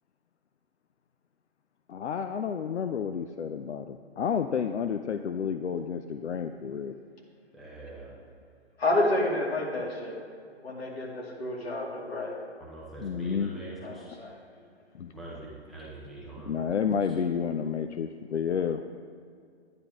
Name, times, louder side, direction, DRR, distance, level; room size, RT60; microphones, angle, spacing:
voice 1, 1.9-6.9 9.8-9.9 13.0-13.5 14.9-15.1 16.5-18.8, left 7 dB, 80° left, 8 dB, 0.6 m, -30 dB
voice 2, 7.5-8.1 12.6-13.7 13.9-14.0 15.1-16.5, right 2 dB, ahead, -5 dB, 0.6 m, -43 dB
voice 3, 8.8-10.3 10.6-12.4 13.8-14.4, left 1 dB, 65° left, -2 dB, 2.7 m, -29 dB
10.5 x 9.7 x 3.6 m, 2.2 s
hypercardioid pair, 140°, 33 cm